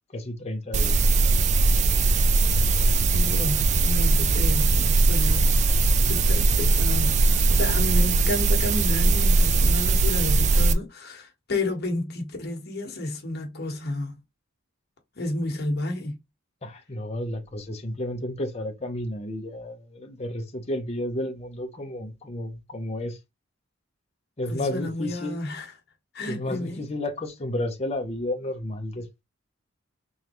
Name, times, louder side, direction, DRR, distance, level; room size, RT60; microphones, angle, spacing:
voice 1, 0.1-1.1 16.6-23.2 24.4-25.4 26.3-29.2, left 1 dB, 30° left, 0.7 m, -32 dB
sound 1, 0.7-10.7, right 3 dB, 35° right, 0.3 m, -20 dB
voice 2, 3.1-5.7 6.0-14.2 15.1-16.2 24.5-25.7 26.1-26.8, left 1 dB, 50° left, 1.3 m, -31 dB
3.7 x 3.2 x 3.0 m
head